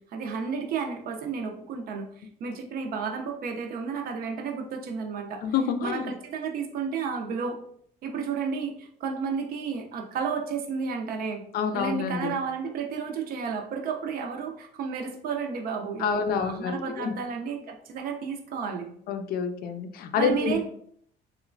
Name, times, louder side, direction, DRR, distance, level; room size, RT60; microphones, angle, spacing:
voice 1, 0.1-5.4 5.8-7.6 8.0-11.4 11.7-18.9 20.2-20.6, right 5 dB, 60° right, 3 dB, 0.5 m, -32 dB
voice 2, 5.4-6.1 11.5-12.3 16.0-17.1 19.1-20.6, left 6 dB, 65° left, 7 dB, 0.4 m, -28 dB
2.9 x 2.1 x 2.5 m, 0.64 s
cardioid pair, 110°, 17 cm